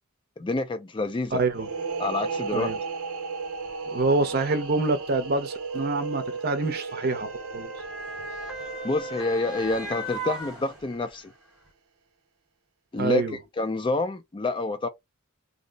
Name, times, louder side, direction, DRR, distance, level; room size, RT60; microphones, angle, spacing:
voice 1, 0.4-1.4 2.0-2.7 8.8-11.3 12.9-13.2 13.6-14.9, left 2 dB, 25° left, 0.3 m, -28 dB
Motor vehicle (road) / Siren, 1.3-1.4 2.3-2.5 3.6-11.2 11.7-11.8, right 1 dB, 5° right, 0.9 m, -39 dB
voice 2, 1.3-1.7 2.5-2.8 3.9-7.7 13.0-13.4, right 3 dB, 45° right, 0.6 m, -26 dB
sound 1, 1.5-11.0, right 4 dB, 85° right, 0.6 m, -35 dB
2.7 x 2.0 x 3.9 m
head